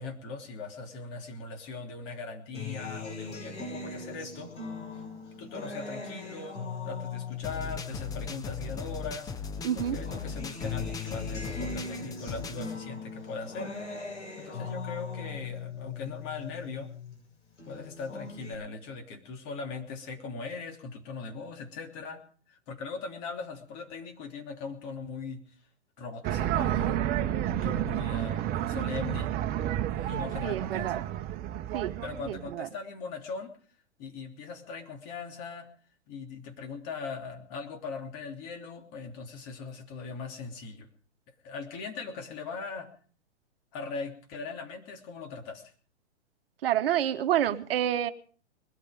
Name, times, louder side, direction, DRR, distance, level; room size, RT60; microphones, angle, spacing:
voice 1, 0.0-4.5 4.9-5.0 5.4-9.3 9.7-13.7 14.4-16.9 17.6-25.6 26.0-27.0 27.5-29.3 29.9-31.1 32.0-33.6 34.0-35.7 36.1-40.9 41.4-42.9 43.7-45.7, left 4 dB, 40° left, 5 dB, 3.2 m, -40 dB
Acoustic guitar, 2.5-9.2 9.6-17.2 17.6-18.5, left 4 dB, 85° left, 7.4 m, -40 dB
sound 1, 7.4-12.7, left 5 dB, 10° left, 0.7 m, -38 dB
voice 2, 9.6-10.0 30.4-31.0 31.7-31.9 32.3-32.7 46.6-48.1, right 11 dB, 55° right, 10 dB, 1.2 m, -28 dB
sound 2, 26.2-32.5, right 12 dB, 25° right, 1.2 m, -30 dB
21.0 x 13.0 x 5.1 m, 0.44 s
hypercardioid pair, 120°, 34 cm